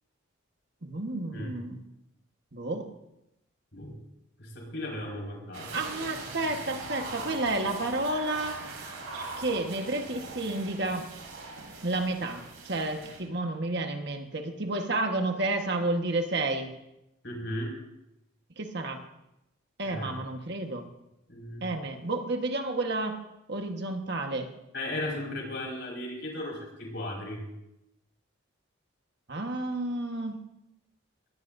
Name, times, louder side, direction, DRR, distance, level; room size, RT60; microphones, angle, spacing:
voice 1, 0.8-1.8 2.5-2.9 5.7-8.6 9.4-11.1 11.8-16.7 18.6-19.0 19.8-20.9 21.6-23.2 23.5-24.5 29.3-30.4, right 2 dB, 50° right, 4 dB, 1.5 m, -31 dB
voice 2, 4.4-5.8 17.2-17.7 19.8-20.2 21.3-21.6 24.7-27.4, left 1 dB, 55° left, -2 dB, 5.4 m, -36 dB
sound 1, 5.5-13.2, right 3 dB, 90° right, 5.3 m, -41 dB
22.0 x 18.0 x 2.7 m, 0.87 s
head